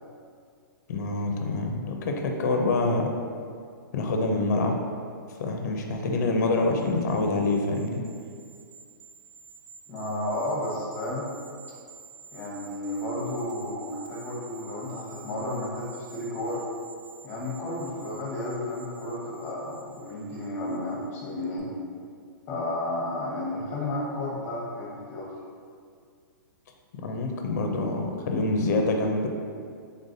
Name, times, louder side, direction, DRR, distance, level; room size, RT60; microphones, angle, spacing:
voice 1, 0.9-3.1 3.9-4.8 5.4-8.0 27.0-29.3, left 2 dB, 50° left, 3 dB, 0.5 m, -26 dB
sound 1, 6.5-21.1 21.4-21.6, right 5 dB, 70° right, 0.4 m, -50 dB
voice 2, 9.9-11.3 12.3-16.6 17.2-21.7 22.5-25.3, left 1 dB, 20° left, -5 dB, 0.9 m, -32 dB
3.9 x 3.4 x 2.6 m, 2.2 s
hypercardioid pair, 155°, 11 cm